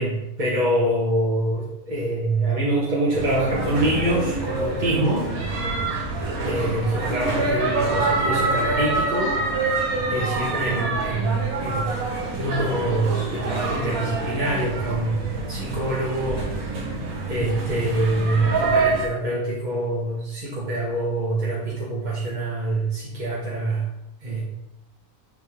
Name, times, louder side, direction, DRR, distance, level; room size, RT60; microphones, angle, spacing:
voice 1, 0.0-5.3 6.4-9.4 10.1-11.9 12.2-15.2 15.5-16.5 16.8-16.9 17.3-23.8 24.2-24.4, right 1 dB, 35° right, -6 dB, 1.4 m, -25 dB
sound 1, 3.1-19.1, right 3 dB, 80° right, 1.8 m, -26 dB
9.4 x 3.9 x 3.6 m, 0.94 s
omnidirectional pair, 1.5 m